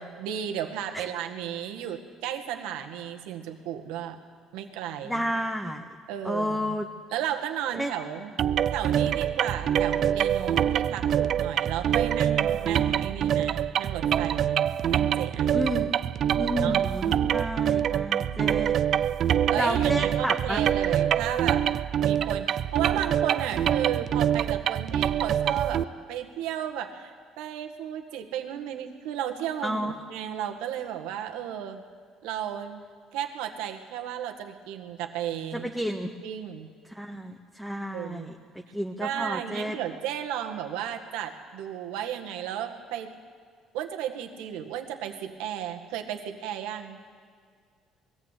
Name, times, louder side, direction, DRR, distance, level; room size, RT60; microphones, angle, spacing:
voice 1, 0.0-4.2 4.5-5.2 6.1-6.8 7.1-8.3 8.7-15.7 16.6-16.8 19.5-21.7 22.0-31.8 32.2-32.8 33.1-35.7 36.2-36.7 37.9-38.3 39.0-43.1 43.7-47.0, right 10 dB, 85° right, 5 dB, 1.8 m, -34 dB
voice 2, 5.0-5.8 6.2-6.9 7.8-7.9 15.5-16.1 16.3-19.0 19.5-20.6 29.6-29.9 35.5-36.1 36.9-38.3 38.7-39.8, equal, ahead, 1 dB, 1.6 m, -31 dB
sound 1, 8.4-25.8, right 9 dB, 55° right, 0.5 m, -25 dB
21.0 x 15.0 x 8.5 m, 2.1 s
supercardioid pair, 90°, 0 cm